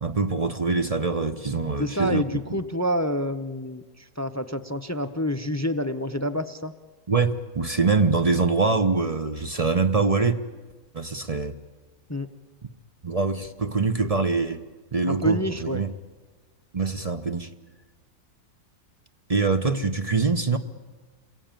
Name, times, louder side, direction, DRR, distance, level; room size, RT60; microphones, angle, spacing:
voice 1, 0.0-2.2 2.5-2.6 7.1-10.4 10.9-11.6 13.0-14.6 14.9-15.9 16.7-17.5 19.3-20.6, right 4 dB, 30° right, 0.8 m, -24 dB
voice 2, 1.8-6.7 12.1-12.3 15.1-15.8, equal, 25° left, 0.4 m, -28 dB
28.0 x 22.0 x 9.0 m
omnidirectional pair, 1.7 m